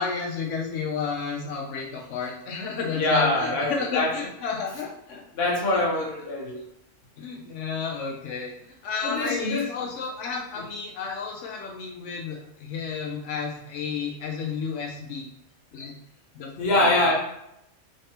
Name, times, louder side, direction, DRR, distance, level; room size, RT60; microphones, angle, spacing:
voice 1, 0.0-5.2 5.7-6.1 7.2-8.5 8.8-15.3 15.7-15.9 16.3-17.1, left 5 dB, 90° left, -1 dB, 1.0 m, -32 dB
voice 2, 2.9-4.1 5.3-6.6 9.0-9.6 10.6-10.7 16.6-17.1, left 2 dB, 60° left, -2 dB, 1.1 m, -24 dB
3.3 x 3.3 x 2.9 m, 0.80 s
omnidirectional pair, 1.2 m